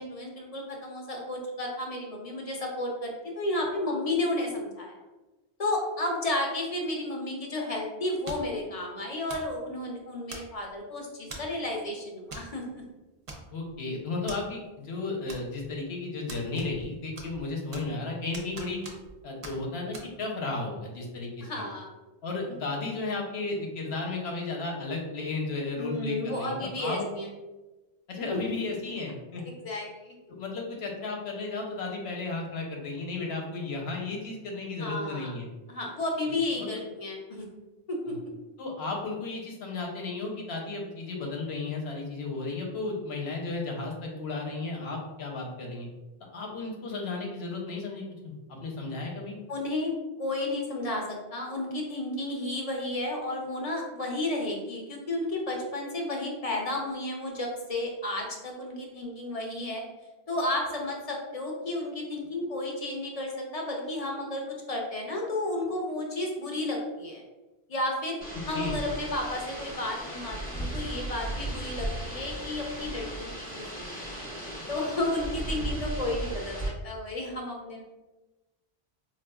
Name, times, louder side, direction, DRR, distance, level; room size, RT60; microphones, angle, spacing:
voice 1, 0.0-5.0 5.6-12.8 21.4-21.9 25.8-27.3 28.3-28.4 29.6-30.1 34.8-35.3 35.7-37.4 37.9-38.2 46.8-46.9 49.5-49.9 50.2-59.8 60.3-67.2 67.7-68.2 68.4-74.1 74.7-77.8, left 1 dB, 45° left, 0 dB, 0.6 m, -32 dB
sound 1, 8.3-8.6 9.3-9.6 10.3-10.7 11.3-11.6 12.3-12.5 12.8-12.9 13.3-13.8 14.3-14.4 15.3-15.8 16.3-16.9 17.2-18.0 18.3-19.2 19.4-19.6 19.9-20.1, right 2 dB, 45° right, 0.4 m, -42 dB
voice 2, 13.5-18.8 19.2-21.6 22.2-27.1 28.1-29.4 30.3-35.5 36.3-36.7 38.6-45.9 46.3-49.4 68.5-68.8, left 3 dB, 90° left, 0 dB, 1.0 m, -34 dB
sound 2, 68.2-76.7, right 1 dB, 10° left, 0.8 m, -36 dB
4.3 x 2.3 x 2.2 m, 1.1 s
omnidirectional pair, 1.0 m